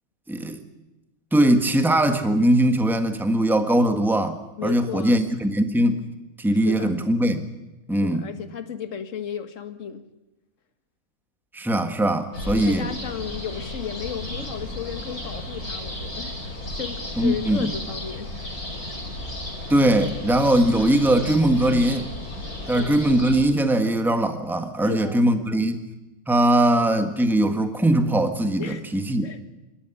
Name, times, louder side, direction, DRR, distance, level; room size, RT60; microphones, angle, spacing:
voice 1, 0.3-0.6 1.3-6.0 6.4-7.5 7.9-8.3 11.5-12.9 17.2-17.7 19.7-22.1 22.7-25.8 26.3-29.3, right 1 dB, ahead, 7 dB, 1.4 m, -21 dB
voice 2, 4.6-5.2 6.6-7.0 8.0-10.1 12.4-16.4 16.7-18.3 22.6-23.0 24.8-25.7 28.6-28.9 29.2-29.5, left 8 dB, 60° left, 9 dB, 1.8 m, -35 dB
sound 1, 12.3-23.4, left 1 dB, 80° left, 5.4 m, -34 dB
27.5 x 12.5 x 10.0 m, 1.0 s
omnidirectional pair, 1.5 m